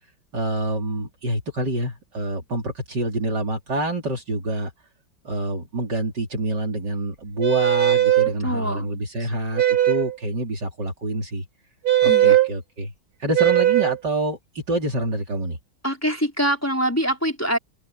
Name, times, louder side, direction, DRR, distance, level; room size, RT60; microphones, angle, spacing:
voice 1, 0.3-4.7 5.2-11.5 12.0-12.9 13.2-14.4 14.7-15.6, right 1 dB, 55° right, 4.0 m, -27 dB
sound 1, 7.4-8.3 9.6-10.2 11.8-12.5 13.3-14.0, right 13 dB, 75° right, 3.5 m, -18 dB
voice 2, 8.4-9.0 12.0-12.4 15.8-17.6, equal, 5° left, 4.3 m, -24 dB
omnidirectional pair, 2.3 m